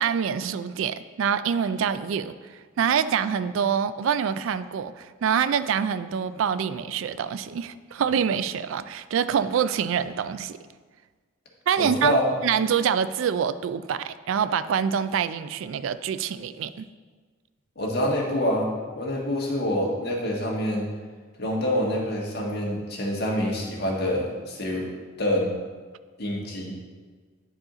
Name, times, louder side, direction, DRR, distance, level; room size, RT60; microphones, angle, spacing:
voice 1, 0.0-2.5 2.8-10.6 11.7-16.9, right 7 dB, 75° right, 14 dB, 0.3 m, -26 dB
voice 2, 11.8-12.3 17.8-20.9 21.4-24.8 25.2-25.5 26.2-26.7, left 1 dB, 55° left, -2 dB, 1.5 m, -26 dB
9.9 x 4.8 x 3.8 m, 1.5 s
head